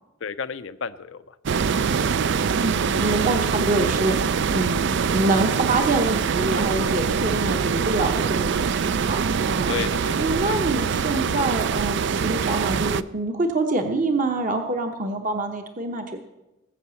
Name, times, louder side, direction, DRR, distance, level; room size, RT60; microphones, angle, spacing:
voice 1, 0.2-1.7 2.1-2.2 9.7-10.5, left 6 dB, 65° left, 13 dB, 0.6 m, -33 dB
sound 1, 1.5-13.0, right 6 dB, 55° right, 0.4 m, -24 dB
voice 2, 2.6-9.8 10.2-16.2, right 2 dB, 40° right, 5 dB, 0.9 m, -26 dB
19.5 x 7.3 x 7.0 m, 0.99 s
head